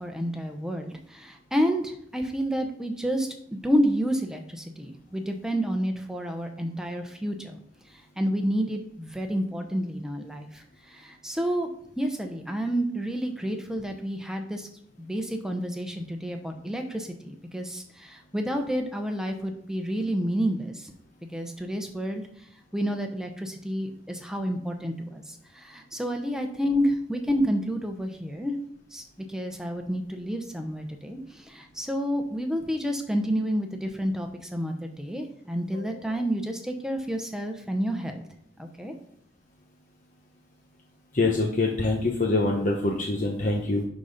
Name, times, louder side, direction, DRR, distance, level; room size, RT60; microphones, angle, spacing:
voice 1, 0.0-7.6 8.2-11.7 12.0-14.7 15.0-20.9 21.3-22.2 22.7-28.5 28.9-38.2 38.6-38.9, equal, 5° right, 4 dB, 0.9 m, -29 dB
voice 2, 41.1-43.8, left 2 dB, 45° left, 0 dB, 0.9 m, -25 dB
11.0 x 4.1 x 5.2 m, 0.67 s
head